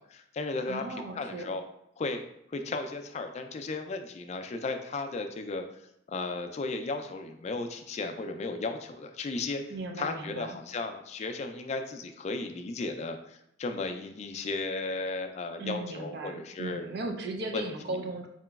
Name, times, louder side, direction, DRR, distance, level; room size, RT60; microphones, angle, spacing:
voice 1, 0.0-1.6 2.0-2.2 2.5-5.6 6.1-9.6 10.0-16.9 17.5-18.0, left 3 dB, 35° left, 6 dB, 0.3 m, -35 dB
voice 2, 0.7-1.5 9.7-10.6 15.6-18.3, right 2 dB, 55° right, 3 dB, 0.5 m, -37 dB
4.7 x 2.9 x 2.3 m, 0.82 s
head